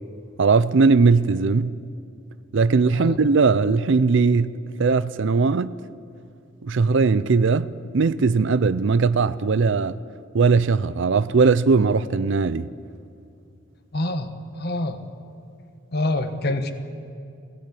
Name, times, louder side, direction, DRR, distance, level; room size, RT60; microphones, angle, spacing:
voice 1, 0.4-1.8 2.5-4.5 4.8-5.8 6.6-7.7 7.9-10.0 10.3-12.7, right 4 dB, 60° right, 0.5 m, -19 dB
voice 2, 13.9-15.0 15.9-16.7, left 1 dB, 50° left, 1.3 m, -26 dB
21.5 x 17.0 x 8.5 m
head